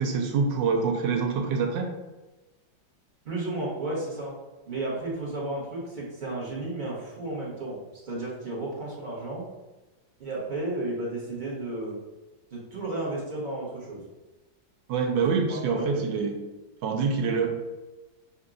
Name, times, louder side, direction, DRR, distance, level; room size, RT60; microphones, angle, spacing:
voice 1, 0.0-1.9 14.9-16.3 16.8-17.5, right 5 dB, 75° right, 3 dB, 1.2 m, -25 dB
voice 2, 3.2-4.4 4.6-7.8 8.1-9.5 10.2-12.0 12.5-14.0 15.2-15.3 15.7-16.0, right 2 dB, 30° right, -6 dB, 0.9 m, -33 dB
5.7 x 2.7 x 2.5 m, 1.1 s
omnidirectional pair, 2.1 m